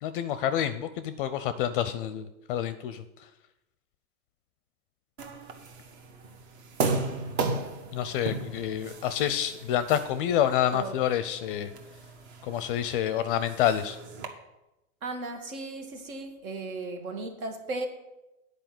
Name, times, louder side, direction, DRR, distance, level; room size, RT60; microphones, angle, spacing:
voice 1, 0.0-3.0 7.9-11.7 12.4-14.0, left 10 dB, 40° left, 0.5 m, -28 dB
sound 1, 5.2-14.3, right 3 dB, 50° right, 1.4 m, -36 dB
voice 2, 15.0-17.9, right 2 dB, 70° right, 1.9 m, -36 dB
9.0 x 4.9 x 7.6 m
hypercardioid pair, 125°, 43 cm